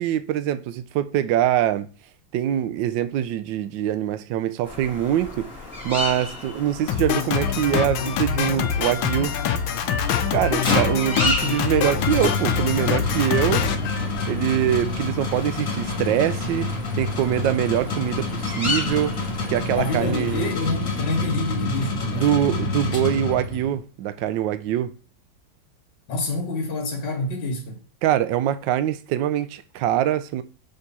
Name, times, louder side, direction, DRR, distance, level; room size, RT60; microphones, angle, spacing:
voice 1, 0.0-1.9 2.3-5.5 5.8-9.4 10.3-13.7 14.3-16.7 16.9-19.2 19.5-20.5 22.1-24.9 28.0-30.4, right 11 dB, 75° right, 1.2 m, -24 dB
sound 1, 4.6-20.5, left 2 dB, 15° left, 2.2 m, -34 dB
Drum kit, 6.9-14.7, left 8 dB, 80° left, 1.4 m, -25 dB
sound 2, 10.6-23.8, left 3 dB, 45° left, 1.9 m, -28 dB
voice 2, 19.8-22.6 26.1-27.8, left 2 dB, 60° left, 2.0 m, -27 dB
6.7 x 3.6 x 4.1 m
omnidirectional pair, 2.2 m